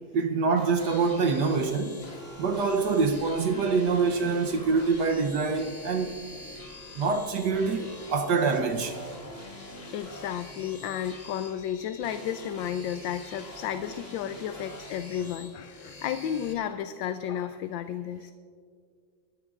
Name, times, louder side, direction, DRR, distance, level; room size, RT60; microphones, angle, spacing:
voice 1, 0.1-2.0 2.4-6.1 6.9-9.0, right 4 dB, 65° right, 1.3 m, -25 dB
sound 1, 0.5-16.5, left 1 dB, 30° left, 1.9 m, -45 dB
sound 2, 2.3-9.7, equal, 10° right, 2.8 m, -52 dB
voice 2, 9.9-18.3, left 9 dB, 75° left, 1.2 m, -33 dB
28.0 x 14.0 x 2.5 m
omnidirectional pair, 2.2 m